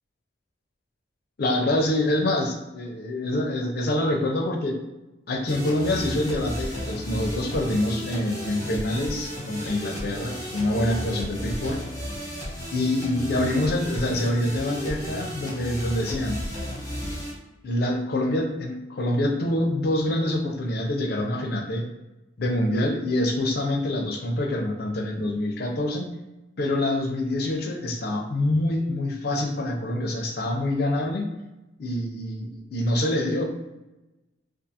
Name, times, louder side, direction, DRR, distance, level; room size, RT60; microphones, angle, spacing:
voice 1, 1.4-4.8 5.3-11.8 12.7-16.4 17.6-21.9 22.4-26.1 26.6-31.3 31.8-33.4, left 1 dB, 50° left, 2 dB, 0.4 m, -26 dB
sound 1, 5.5-17.3, equal, 15° left, 0.7 m, -34 dB
2.4 x 2.4 x 2.7 m, 1.0 s
head